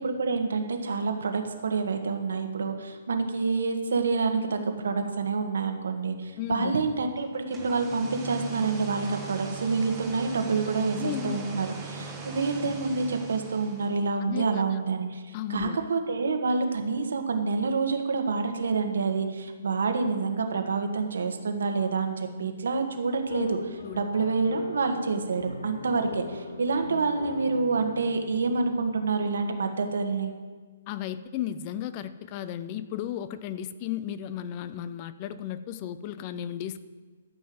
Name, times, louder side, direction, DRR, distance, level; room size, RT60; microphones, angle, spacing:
voice 1, 0.0-30.3, right 4 dB, 80° right, 5 dB, 1.5 m, -28 dB
voice 2, 6.4-6.7 11.0-11.4 14.3-14.5 14.7-14.8 15.3-15.8 23.8-24.0 30.9-36.8, left 11 dB, 25° left, 14 dB, 0.4 m, -34 dB
sound 1, 7.3-14.1, right 5 dB, 10° right, 1.1 m, -40 dB
sound 2, 23.2-29.1, left 3 dB, 90° left, 1.8 m, -41 dB
12.5 x 5.7 x 7.8 m, 1.5 s
hypercardioid pair, 175°, 0 cm